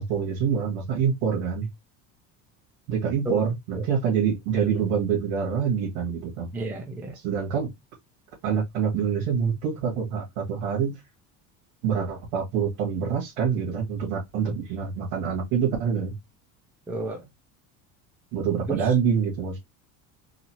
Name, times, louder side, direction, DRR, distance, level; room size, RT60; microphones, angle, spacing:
voice 1, 0.0-1.7 2.9-6.5 7.1-7.7 8.4-11.0 11.8-16.1 18.3-19.6, right 7 dB, 90° right, 1.8 m, -26 dB
voice 2, 6.5-7.1 14.5-14.6 16.9-17.2 18.7-18.8, right 2 dB, 5° right, 0.3 m, -31 dB
3.9 x 2.7 x 2.8 m
cardioid pair, 175°, 38 cm